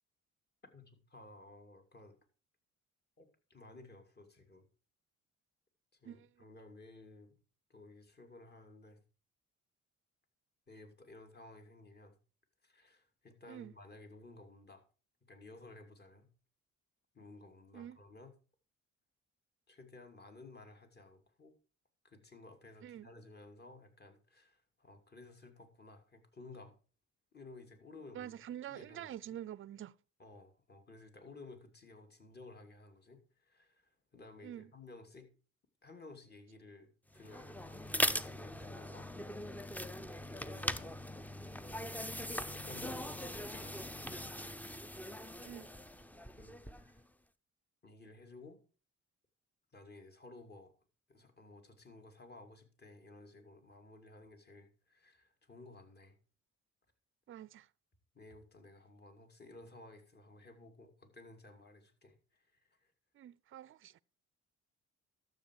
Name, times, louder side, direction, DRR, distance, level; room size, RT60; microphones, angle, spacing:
voice 1, 0.7-2.2 3.2-4.7 6.0-7.4 7.7-9.0 10.7-12.2 12.6-14.8 15.3-16.3 17.1-18.3 19.7-21.5 22.0-26.7 27.3-28.4 28.7-29.4 30.2-35.3 35.8-39.1 40.3-41.0 42.4-43.2 43.5-44.3 46.4-47.0 47.8-48.7 49.7-50.7 51.1-56.2 58.1-62.9, left 2 dB, 35° left, 2.6 m, -56 dB
voice 2, 6.0-6.5 13.5-13.7 17.7-18.0 22.8-23.1 28.1-30.0 34.4-34.7 45.4-45.7 57.3-57.7 63.1-64.0, right 11 dB, 45° right, 0.5 m, -47 dB
sound 1, 37.1-47.0, left 1 dB, 5° left, 0.6 m, -40 dB
12.5 x 7.2 x 4.7 m
cardioid pair, 90°, 30 cm